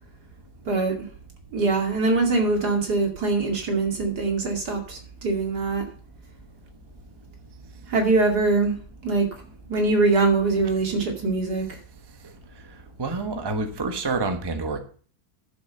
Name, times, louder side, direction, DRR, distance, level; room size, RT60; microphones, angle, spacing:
voice 1, 0.7-1.0 1.5-5.8 7.9-8.7 9.0-9.3 9.7-11.8, right 3 dB, 80° right, 2.9 m, -23 dB
voice 2, 13.0-14.8, right 3 dB, 15° right, 1.1 m, -27 dB
12.0 x 7.2 x 5.5 m
omnidirectional pair, 1.7 m